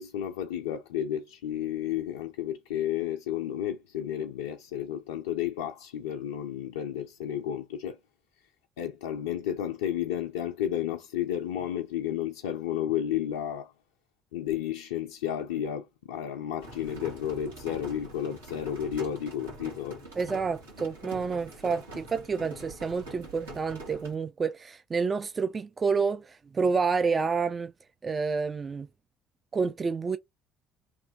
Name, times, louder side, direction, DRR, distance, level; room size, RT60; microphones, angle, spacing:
voice 1, 0.0-8.0 8.8-13.7 14.3-20.0, left 10 dB, 75° left, 0.4 m, -32 dB
sound 1, 16.6-24.2, right 1 dB, 85° right, 1.6 m, -44 dB
voice 2, 20.2-27.7 28.0-28.9 29.5-30.2, right 5 dB, 30° right, 0.3 m, -29 dB
3.1 x 2.7 x 3.5 m
figure-of-eight pair, 55°, 0 cm